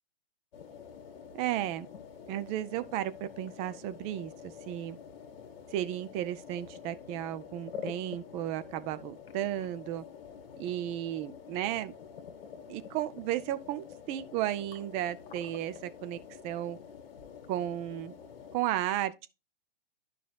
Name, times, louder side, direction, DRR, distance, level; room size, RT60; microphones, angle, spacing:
sound 1, 0.5-18.6, left 7 dB, 65° left, 1.3 m, -47 dB
voice 1, 1.3-1.9 2.3-5.0 5.7-10.0 10.6-11.9 12.7-16.2 16.4-16.8 17.5-18.1 18.5-19.3, right 13 dB, 20° right, 0.4 m, -34 dB
12.0 x 4.9 x 2.3 m
hypercardioid pair, 125°, 30 cm